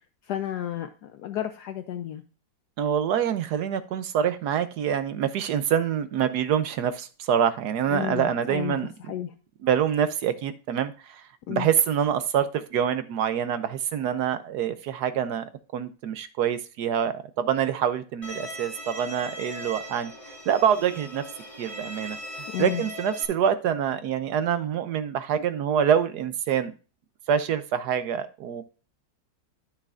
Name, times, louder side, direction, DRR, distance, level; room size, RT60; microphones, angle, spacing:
voice 1, 0.3-2.2 7.9-8.8 9.1-9.3 11.5-11.7 22.5-22.8, left 11 dB, 70° left, 9 dB, 1.1 m, -32 dB
voice 2, 2.8-8.9 9.6-11.2 11.5-15.4 15.7-20.1 20.5-21.2 21.6-22.2 22.6-26.7 27.3-28.6, right 8 dB, 70° right, 12 dB, 1.1 m, -26 dB
Bowed string instrument, 18.2-23.2, equal, 20° left, 1.4 m, -39 dB
12.5 x 6.5 x 2.4 m, 0.34 s
omnidirectional pair, 2.0 m